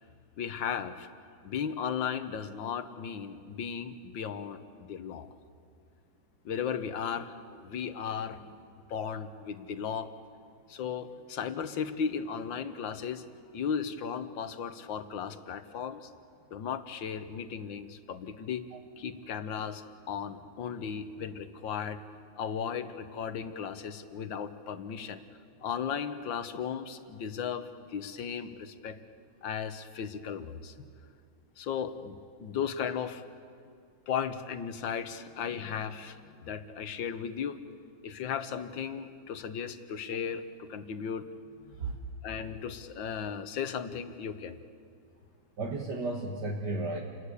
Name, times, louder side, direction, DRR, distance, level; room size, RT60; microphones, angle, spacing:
voice 1, 0.4-1.1 1.4-5.3 6.5-10.1 10.7-13.2 13.5-16.1 16.5-18.7 19.0-22.0 22.4-25.2 25.6-29.0 29.4-30.9 31.6-33.2 34.1-37.6 38.0-41.3 41.7-41.8 42.2-44.6, left 7 dB, 65° left, 10 dB, 1.8 m, -36 dB
voice 2, 45.6-47.0, right 2 dB, 55° right, 1 dB, 2.2 m, -33 dB
29.0 x 21.0 x 8.3 m, 2.3 s
omnidirectional pair, 2.3 m